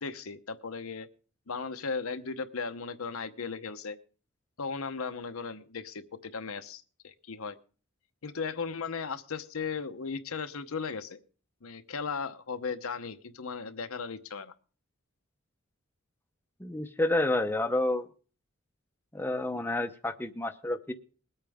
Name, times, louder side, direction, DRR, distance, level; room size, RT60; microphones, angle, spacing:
voice 1, 0.0-1.1 1.5-4.0 4.6-7.6 8.2-11.2 11.6-14.5, left 5 dB, 75° left, 9 dB, 0.9 m, -36 dB
voice 2, 16.6-18.1 19.1-20.9, left 1 dB, 10° left, 6 dB, 0.7 m, -29 dB
21.0 x 8.8 x 3.5 m, 0.38 s
head